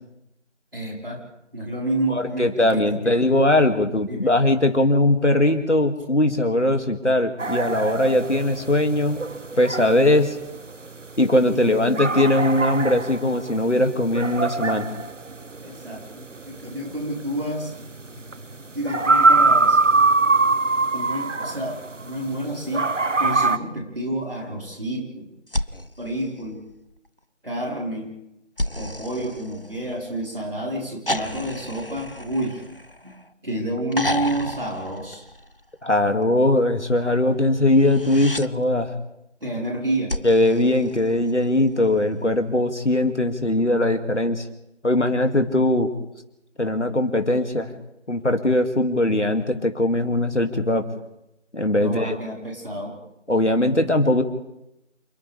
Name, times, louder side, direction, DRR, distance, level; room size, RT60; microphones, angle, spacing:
voice 1, 0.7-1.2 1.5-2.7 3.0-3.2 4.1-4.3 11.5-12.2 15.6-17.7 18.7-19.8 20.9-25.3 26.0-26.6 27.4-28.1 28.7-32.6 33.0-33.2 33.4-35.2 39.4-40.1 51.8-53.0, right 1 dB, 50° right, -2 dB, 4.9 m, -29 dB
voice 2, 2.1-9.2 9.6-10.4 11.2-14.9 35.8-38.9 40.2-44.5 44.8-45.9 46.6-47.7 48.1-50.9 51.5-52.2 53.3-54.2, left 1 dB, 70° left, 5 dB, 2.5 m, -20 dB
sound 1, 7.4-22.3 22.7-23.6, right 3 dB, 80° right, 1.0 m, -22 dB
sound 2, 25.5-27.1 28.6-30.3 31.1-33.3 33.9-35.8 37.7-38.5 40.1-41.6 43.1-43.2, left 1 dB, 50° left, 0.7 m, -32 dB
29.0 x 28.0 x 3.5 m, 0.86 s
figure-of-eight pair, 180°, 36 cm